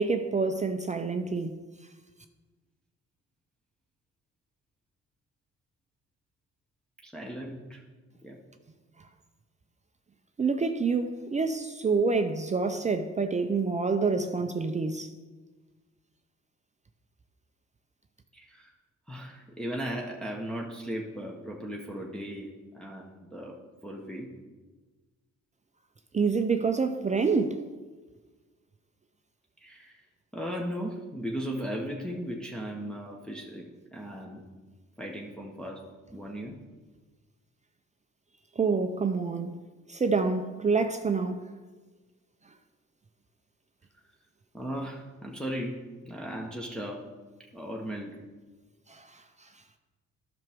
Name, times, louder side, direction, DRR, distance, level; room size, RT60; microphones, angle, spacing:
voice 1, 0.0-1.6 10.4-15.1 26.1-27.6 38.6-39.5 39.9-41.5 48.9-49.1, right 4 dB, 25° right, 0.5 m, -27 dB
voice 2, 7.0-7.8 8.2-8.4 18.3-18.7 19.1-23.6 23.8-24.3 29.6-30.0 30.3-34.4 35.0-35.8 36.1-36.6 44.5-47.1 47.5-48.2, equal, 5° left, 1.0 m, -37 dB
11.0 x 6.1 x 3.5 m
cardioid pair, 90°, 30 cm